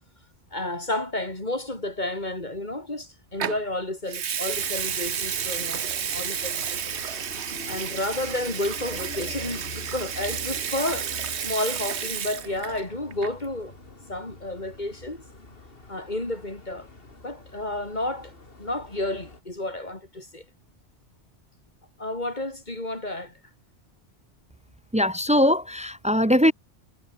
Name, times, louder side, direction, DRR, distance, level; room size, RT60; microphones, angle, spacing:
voice 1, 0.5-7.0 7.7-11.1 11.4-13.7 14.1-15.2 15.9-16.9 17.2-18.3 18.6-20.4 22.0-23.3 26.3-26.4, left 1 dB, 45° left, 4.5 m, -31 dB
Water tap faucet / Sink (filling or washing) / Liquid, 3.4-3.6 4.1-12.8 13.1-13.5, right 8 dB, 90° right, 1.3 m, -31 dB
sound 1, 4.5-19.4, left 3 dB, 60° left, 3.3 m, -44 dB
voice 2, 24.9-26.5, equal, 10° right, 0.4 m, -21 dB
omnidirectional pair, 1.1 m